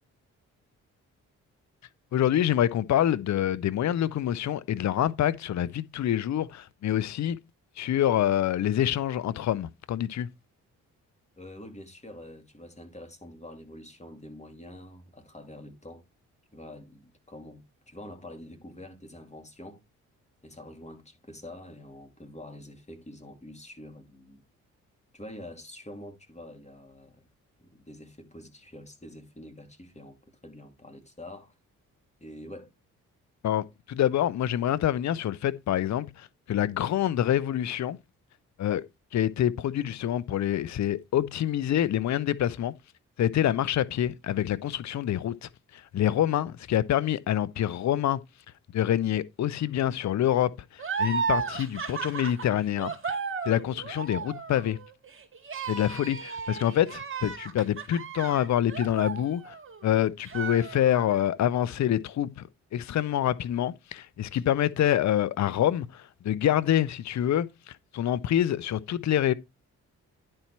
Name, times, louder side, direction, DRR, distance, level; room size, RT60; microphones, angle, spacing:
voice 1, 2.1-7.4 7.8-10.3 33.4-38.0 38.6-38.8 39.1-42.7 43.2-48.2 48.7-52.9 53.5-54.8 55.7-59.5 59.8-69.3, left 11 dB, 50° left, 0.7 m, -26 dB
voice 2, 11.4-16.0 16.5-19.8 20.4-24.4 25.1-27.3 27.6-31.5 32.2-32.7, left 1 dB, 20° left, 2.4 m, -46 dB
sound 1, 50.8-59.9 60.2-61.3, right 5 dB, 35° right, 2.3 m, -34 dB
10.5 x 4.3 x 4.5 m
hypercardioid pair, 45°, 36 cm